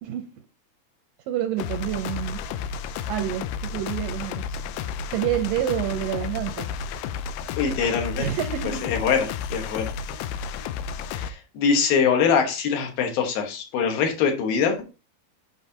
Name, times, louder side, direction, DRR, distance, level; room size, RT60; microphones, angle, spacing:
voice 1, 1.3-2.4 3.1-4.4 5.1-6.9 8.2-8.9, right 11 dB, 80° right, 7 dB, 2.1 m, -28 dB
sound 1, 1.6-11.3, left 6 dB, 90° left, 1.9 m, -32 dB
voice 2, 7.6-8.3 8.8-9.9 11.1-14.8, left 6 dB, 75° left, 3 dB, 2.9 m, -23 dB
7.9 x 5.6 x 2.7 m, 0.31 s
omnidirectional pair, 4.4 m